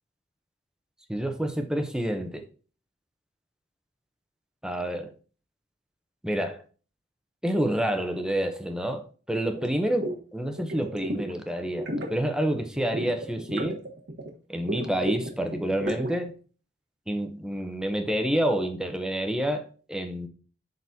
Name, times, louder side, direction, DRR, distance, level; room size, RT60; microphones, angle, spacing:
voice 1, 1.1-2.4 4.6-5.1 6.2-6.6 7.4-13.8 14.5-16.3 17.1-20.3, right 1 dB, 5° right, 0.8 m, -28 dB
sound 1, 9.5-9.7 10.0-10.2 10.5-11.3 11.6-12.2 12.8-14.3 14.6-16.2, right 1 dB, 65° right, 1.3 m, -33 dB
12.0 x 4.0 x 2.7 m
head